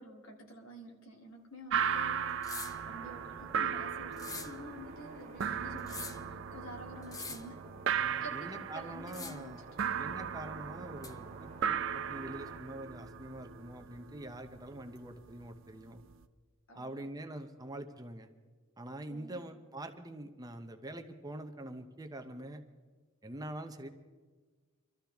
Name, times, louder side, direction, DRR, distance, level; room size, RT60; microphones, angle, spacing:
voice 1, 0.0-7.7 8.2-9.6 16.7-17.1 19.1-19.4, equal, 70° left, 1 dB, 2.5 m, -49 dB
sound 1, 1.7-16.2, right 7 dB, 60° right, 0.5 m, -37 dB
sound 2, 2.4-2.8 4.1-4.6 5.8-6.3 7.0-7.5 9.1-9.5 11.0-11.2, left 4 dB, 15° left, 0.6 m, -44 dB
sound 3, 2.7-12.6, right 2 dB, 35° right, 1.7 m, -53 dB
voice 2, 7.9-9.6 10.0-16.0 16.7-18.3 18.8-22.6 23.2-23.9, right 1 dB, 20° right, 7 dB, 0.7 m, -45 dB
25.5 x 13.0 x 3.5 m, 1.4 s
head